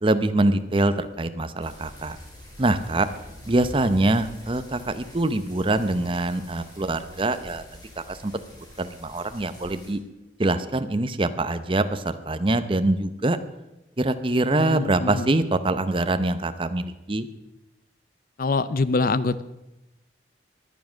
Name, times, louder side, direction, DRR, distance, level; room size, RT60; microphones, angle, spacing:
voice 1, 0.0-2.2 2.6-3.1 3.5-7.6 8.1-8.3 8.8-10.0 10.4-13.4 14.0-17.3, right 2 dB, 30° right, 11 dB, 0.7 m, -24 dB
sound 1, 1.6-9.9, left 1 dB, 20° left, 5.0 m, -46 dB
voice 2, 14.5-15.3 18.4-19.4, left 3 dB, 50° left, 16 dB, 0.6 m, -24 dB
21.5 x 7.4 x 6.2 m, 0.95 s
head